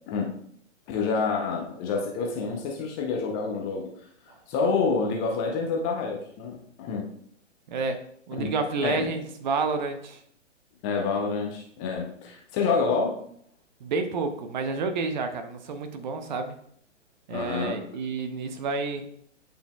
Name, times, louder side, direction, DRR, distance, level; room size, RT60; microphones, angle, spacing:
voice 1, 0.1-0.4 0.9-3.9 4.5-7.1 8.4-8.5 8.8-9.1 10.8-13.2 17.3-17.8, left 4 dB, 15° left, 0 dB, 0.6 m, -28 dB
voice 2, 8.3-10.2 13.8-16.6 17.3-19.0, right 4 dB, 35° right, 7 dB, 0.7 m, -29 dB
8.9 x 5.2 x 2.3 m, 0.67 s
figure-of-eight pair, 125°, 38 cm